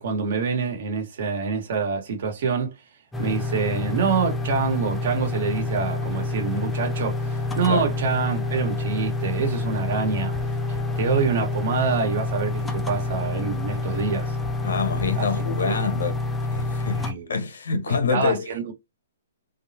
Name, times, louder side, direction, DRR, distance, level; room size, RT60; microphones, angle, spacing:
voice 1, 0.0-2.7 3.2-10.3 11.0-14.3 15.2-15.3 15.6-15.8 17.0-17.3 17.9-18.7, right 5 dB, 55° right, 1.3 m, -26 dB
sound 1, 3.1-17.1, left 2 dB, 5° left, 0.4 m, -27 dB
voice 2, 14.6-16.2 16.5-18.5, left 5 dB, 85° left, 1.1 m, -26 dB
3.5 x 2.1 x 2.7 m
hypercardioid pair, 165°, 0 cm